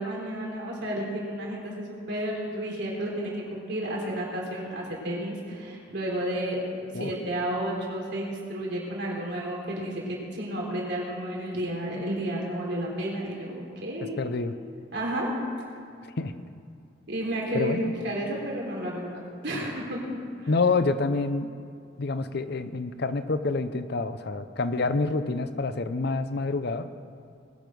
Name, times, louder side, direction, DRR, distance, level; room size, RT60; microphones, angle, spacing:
voice 1, 0.0-6.6 6.9-14.2 14.9-15.3 17.1-20.0 20.4-20.5, right 1 dB, 65° right, -3 dB, 3.8 m, -32 dB
voice 2, 14.2-14.5 16.0-16.3 17.5-17.9 20.5-21.5 22.0-26.9, left 3 dB, 60° left, 11 dB, 0.7 m, -27 dB
20.5 x 7.1 x 6.2 m, 2.4 s
head